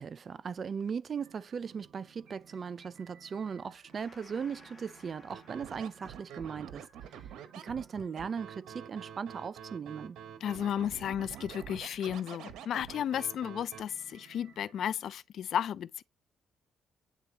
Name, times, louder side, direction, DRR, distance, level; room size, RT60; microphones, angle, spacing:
voice 1, 0.0-6.9 7.1-7.3 7.6-10.2, right 6 dB, 45° right, 0.4 m, -38 dB
sound 1, 1.2-15.1, right 6 dB, 65° right, 2.3 m, -59 dB
Gong, 3.9-10.9, left 3 dB, 30° left, 1.5 m, -61 dB
Scratching (performance technique), 5.3-13.8, right 9 dB, 80° right, 1.0 m, -47 dB
voice 2, 10.4-16.0, left 9 dB, 70° left, 0.3 m, -33 dB
9.3 x 3.9 x 2.8 m
cardioid pair, 90°, 0 cm